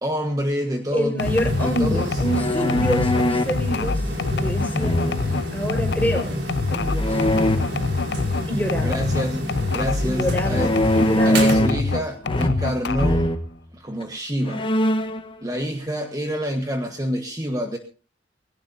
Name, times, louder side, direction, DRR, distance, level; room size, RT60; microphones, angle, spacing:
voice 1, 0.0-1.2 1.6-2.2 8.8-10.7 11.2-13.3 13.7-14.7 15.4-17.8, equal, 20° right, 4 dB, 1.3 m, -27 dB
voice 2, 0.9-4.0 4.3-5.0 5.5-6.3 6.7-7.2 8.5-9.0 10.0-10.7 11.0-11.4, equal, 10° left, 2 dB, 4.9 m, -26 dB
sound 1, 1.2-11.2 11.5-13.3, left 4 dB, 65° left, 0.6 m, -26 dB
sound 2, 1.2-11.6, equal, 65° right, 4.8 m, -29 dB
sound 3, 2.2-3.6 4.8-5.5 7.0-7.6 10.5-11.9 12.2-12.7 13.0-13.4 14.0-14.1 14.5-15.2, left 1 dB, 30° left, 1.4 m, -22 dB
21.0 x 17.5 x 2.7 m, 0.35 s
head